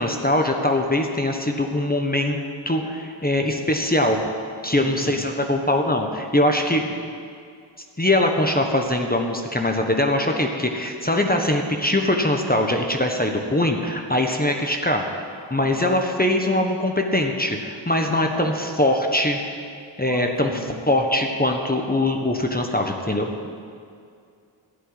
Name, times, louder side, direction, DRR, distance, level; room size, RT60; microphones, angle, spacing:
voice 1, 0.0-2.4 2.7-4.2 4.6-6.8 8.0-15.0 15.5-19.4 20.0-20.6 20.9-23.3, left 1 dB, 20° left, 3 dB, 1.1 m, -22 dB
voice 2, 4.8-5.3 15.6-15.8 18.2-18.5 20.0-20.8, right 2 dB, 45° right, 2 dB, 1.6 m, -37 dB
13.0 x 7.6 x 9.7 m, 2.3 s
wide cardioid pair, 75°, 47 cm